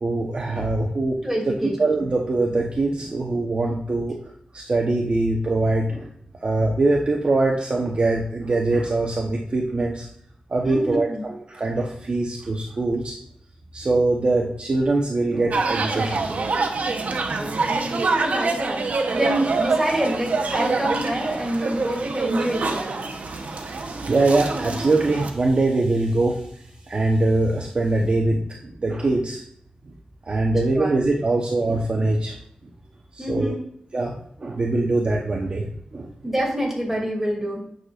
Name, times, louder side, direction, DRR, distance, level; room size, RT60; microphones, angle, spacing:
voice 1, 0.0-1.2 1.4-1.5 1.8-4.2 4.5-6.1 6.4-10.1 10.5-13.1 13.7-17.0 23.3-26.4 26.9-29.4 30.2-32.3 33.1-33.5 33.9-36.1, right 2 dB, 45° right, 0 dB, 1.0 m, -23 dB
voice 2, 1.2-1.8 10.6-11.2 17.4-18.8 19.1-23.0 30.7-30.9 33.2-33.6 36.2-37.6, right 1 dB, 10° right, -2 dB, 2.7 m, -26 dB
sound 1, 15.5-25.3, right 3 dB, 70° right, 0.9 m, -26 dB
9.4 x 6.6 x 2.5 m, 0.68 s
wide cardioid pair, 120°, 3 cm